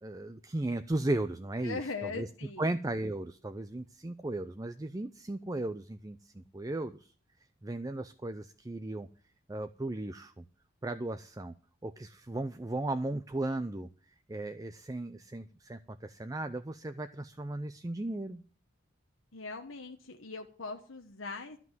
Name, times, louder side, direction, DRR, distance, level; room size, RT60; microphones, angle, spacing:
voice 1, 0.0-2.3 2.6-7.1 7.6-9.1 9.5-10.4 10.8-11.5 11.8-13.9 14.3-18.4, right 2 dB, 20° right, 10 dB, 0.5 m, -36 dB
voice 2, 1.6-2.7 19.3-21.6, left 4 dB, 80° left, 4 dB, 1.2 m, -40 dB
13.0 x 6.0 x 9.3 m, 0.40 s
head